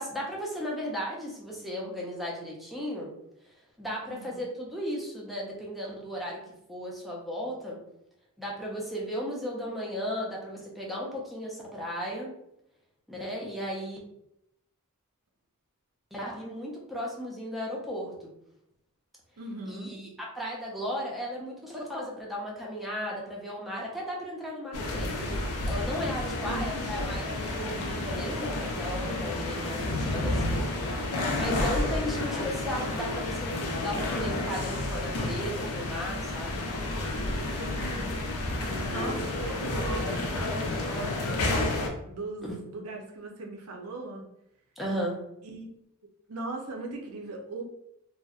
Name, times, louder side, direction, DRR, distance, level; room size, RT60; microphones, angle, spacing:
voice 1, 0.0-3.1 3.8-6.4 6.7-7.8 8.4-12.3 13.1-14.0 16.1-18.3 19.7-25.2 25.7-30.7 31.3-33.5 33.8-36.6 38.7-39.6 44.8-45.2, equal, ahead, -3 dB, 0.4 m, -35 dB
voice 2, 4.1-4.4 19.4-19.9 26.5-26.9 37.6-38.1 38.9-41.5 42.0-44.3 45.4-45.8 46.3-47.6, right 3 dB, 70° right, 2 dB, 0.5 m, -39 dB
sound 1, 24.7-41.9, left 2 dB, 75° left, 0.5 m, -30 dB
2.6 x 2.0 x 2.3 m, 0.81 s
head